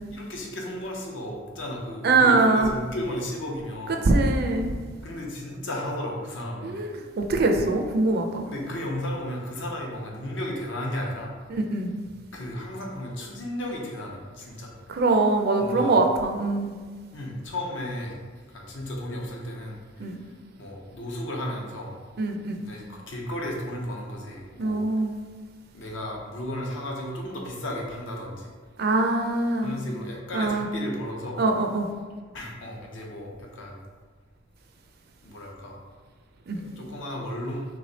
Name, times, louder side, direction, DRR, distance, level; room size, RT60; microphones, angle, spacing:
voice 1, 0.1-4.1 5.0-6.8 8.5-11.4 12.3-14.7 15.6-16.0 17.1-20.3 20.6-21.9 22.6-24.9 25.7-28.5 29.6-31.4 32.3-33.8 35.2-35.8 36.5-37.7, left 1 dB, 65° left, -1 dB, 0.8 m, -34 dB
voice 2, 2.0-2.7 4.1-4.7 6.6-8.5 11.5-11.9 14.9-16.8 20.0-20.2 22.2-22.6 24.6-25.1 28.8-29.8 30.3-30.7 31.4-31.9 36.5-36.6, right 2 dB, 50° right, 4 dB, 0.4 m, -23 dB
3.2 x 3.2 x 4.0 m, 1.5 s
head